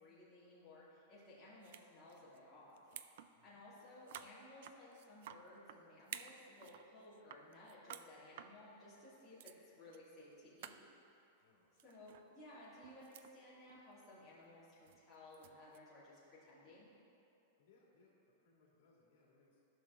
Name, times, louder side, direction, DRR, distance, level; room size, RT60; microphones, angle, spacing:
voice 1, 0.0-2.8 3.4-10.9 11.8-16.9, left 1 dB, 5° left, -13 dB, 2.3 m, -58 dB
sound 1, 1.6-1.8 2.1-2.4 2.7-3.3 3.6-3.7 4.1-5.8 6.1-6.9 7.1-8.1 8.4-8.5 9.1-9.2 9.4-9.6 9.9-10.0 10.3-10.4 10.6-10.8 11.8-12.3 12.6-13.3 13.7-13.9 14.9-15.8, right 10 dB, 50° right, 0.3 m, -53 dB
voice 2, 3.3-3.7 11.4-12.2 17.6-19.6, left 3 dB, 55° left, -4 dB, 2.1 m, -72 dB
14.0 x 6.2 x 3.6 m, 2.8 s
supercardioid pair, 175°, 0 cm